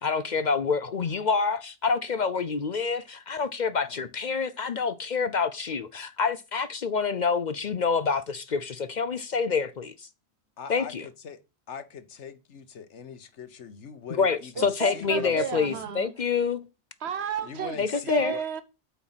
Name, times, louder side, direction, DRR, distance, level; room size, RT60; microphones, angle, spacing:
voice 1, 0.0-10.1 10.7-11.1 14.1-16.7 17.8-18.3, left 5 dB, 50° left, 0.6 m, -27 dB
voice 2, 10.6-10.9 11.2-11.4 11.7-15.8 17.4-18.4, left 6 dB, 80° left, 1.3 m, -41 dB
voice 3, 14.6-16.1 17.0-17.8 18.1-18.6, right 7 dB, 65° right, 1.1 m, -32 dB
8.1 x 4.6 x 5.7 m
omnidirectional pair, 1.2 m